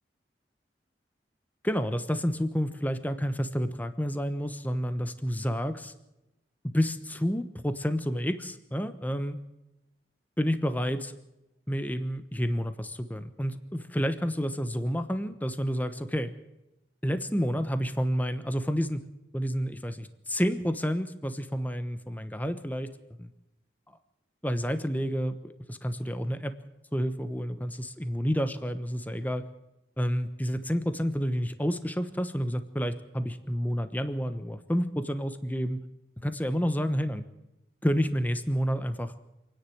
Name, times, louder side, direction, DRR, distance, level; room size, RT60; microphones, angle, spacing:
voice 1, 1.6-5.9 6.6-9.4 10.4-11.2 11.7-16.3 17.0-19.0 19.3-22.9 23.2-23.3 24.4-26.5 26.9-29.4 30.0-35.8 36.2-37.2 37.8-39.1, equal, 10° left, 10 dB, 1.1 m, -29 dB
27.5 x 10.0 x 9.4 m, 0.93 s
head